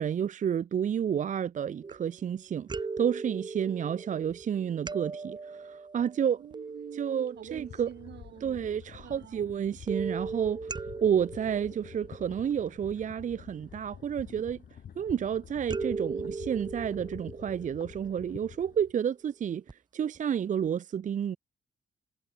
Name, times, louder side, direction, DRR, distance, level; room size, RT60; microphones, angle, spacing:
voice 1, 0.0-2.7 3.0-6.4 6.9-7.9 8.4-10.7 11.0-14.6 15.0-19.6 19.9-21.4, right 8 dB, 45° right, 0.6 m, -30 dB
sound 1, 1.8-2.3 2.7-8.3 9.9-13.1 15.7-19.0 19.7-19.8 20.2-20.3, right 4 dB, 25° right, 1.5 m, -39 dB
voice 2, 6.4-9.5, right 10 dB, 75° right, 2.0 m, -47 dB
sound 2, 7.4-18.9, left 8 dB, 60° left, 5.7 m, -49 dB
wide cardioid pair, 145°, 18 cm